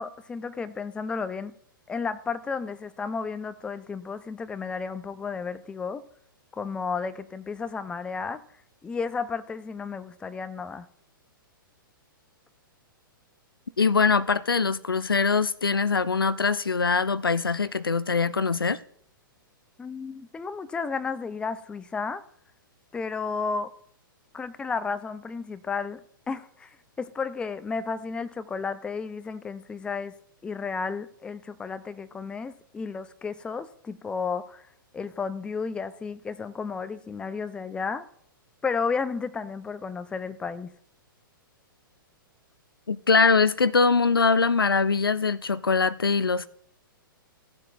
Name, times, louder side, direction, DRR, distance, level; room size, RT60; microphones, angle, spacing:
voice 1, 0.0-1.5 1.9-6.0 6.5-8.4 8.8-10.9 19.8-22.2 22.9-23.7 24.3-26.0 26.3-26.7 27.0-30.1 30.4-34.7 34.9-38.0 38.6-40.7, left 5 dB, 10° left, 0.4 m, -32 dB
voice 2, 13.8-18.8 42.9-46.5, left 4 dB, 80° left, 0.5 m, -22 dB
16.5 x 7.5 x 2.4 m
figure-of-eight pair, 110°, 12 cm